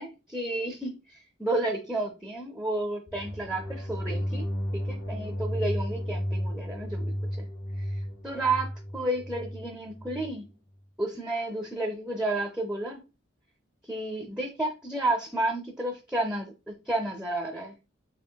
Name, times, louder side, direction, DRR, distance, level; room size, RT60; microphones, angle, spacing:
voice 1, 0.0-4.5 4.7-7.5 7.8-10.5 11.0-13.0 13.9-17.8, right 2 dB, 5° right, 0.5 m, -31 dB
sound 1, 3.1-10.3, equal, 50° left, 0.7 m, -33 dB
5.6 x 2.9 x 2.2 m
head